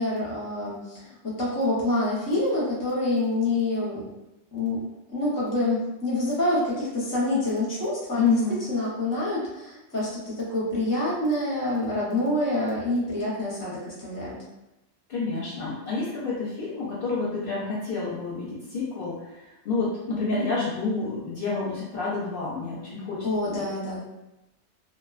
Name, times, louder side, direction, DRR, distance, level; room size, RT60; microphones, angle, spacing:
voice 1, 0.0-4.0 4.5-4.8 5.1-8.4 8.7-14.4 23.2-24.0, left 2 dB, 20° left, -7 dB, 0.7 m, -27 dB
voice 2, 8.1-8.6 15.1-23.6, left 3 dB, 60° left, -7 dB, 0.7 m, -29 dB
2.5 x 2.2 x 2.3 m, 0.95 s
omnidirectional pair, 1.2 m